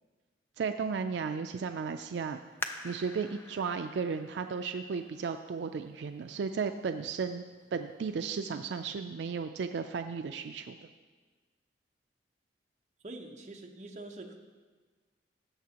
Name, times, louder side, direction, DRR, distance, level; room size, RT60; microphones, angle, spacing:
voice 1, 0.6-2.4 2.8-7.4 7.7-10.8, right 5 dB, 75° right, 7 dB, 0.4 m, -34 dB
sound 1, 2.6-6.0 6.6-6.7 7.3-7.7 8.1-8.2, left 2 dB, 15° left, 0.4 m, -44 dB
voice 2, 13.0-14.4, right 2 dB, 40° right, 2 dB, 0.8 m, -45 dB
17.0 x 7.4 x 2.9 m, 1.4 s
head